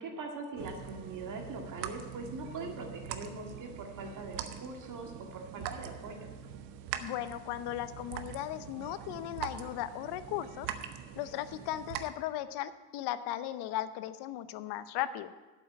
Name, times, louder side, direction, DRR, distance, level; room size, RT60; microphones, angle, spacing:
voice 1, 0.0-6.3, right 3 dB, 45° right, 2 dB, 2.1 m, -42 dB
sound 1, 0.6-12.1, right 9 dB, 75° right, 1.0 m, -43 dB
voice 2, 7.0-10.7 11.2-15.3, left 13 dB, 65° left, 14 dB, 0.8 m, -37 dB
8.5 x 7.6 x 8.8 m, 1.2 s
hypercardioid pair, 80°, 44 cm